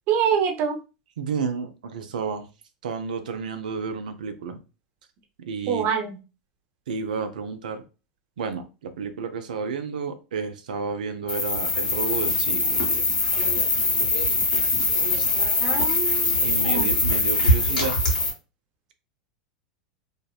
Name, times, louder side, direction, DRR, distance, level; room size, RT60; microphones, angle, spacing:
voice 1, 0.1-0.8 5.7-6.2 15.6-16.9, right 7 dB, 50° right, 3 dB, 0.7 m, -25 dB
voice 2, 1.2-2.5 2.8-4.6 5.4-5.9 6.9-7.8 8.4-13.2 16.4-18.0, right 5 dB, 80° right, 8 dB, 0.4 m, -31 dB
sound 1, 11.3-18.3, left 2 dB, 85° left, 1.1 m, -22 dB
2.6 x 2.1 x 2.3 m, 0.31 s
hypercardioid pair, 95°, 4 cm